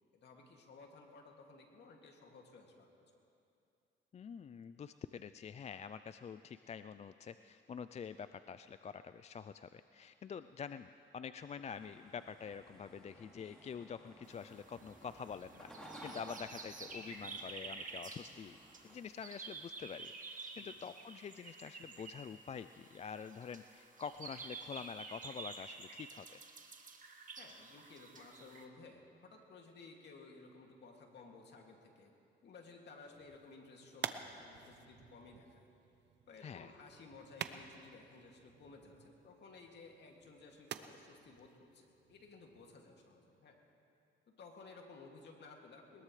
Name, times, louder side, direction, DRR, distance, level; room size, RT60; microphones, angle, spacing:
voice 1, 0.1-2.9 20.6-20.9 27.4-32.1 32.4-35.7 36.3-43.6 44.4-46.0, left 3 dB, 60° left, 1 dB, 2.4 m, -56 dB
voice 2, 4.1-15.7 16.0-18.6 18.8-26.4 36.4-36.7, left 7 dB, 35° left, 12 dB, 0.4 m, -47 dB
sound 1, 11.6-19.0, right 1 dB, 5° left, 3.7 m, -56 dB
sound 2, 14.3-28.6, right 4 dB, 40° right, 1.6 m, -50 dB
sound 3, 33.1-42.8, right 9 dB, 60° right, 0.8 m, -50 dB
21.5 x 20.5 x 3.3 m, 2.6 s
cardioid pair, 90°, 20 cm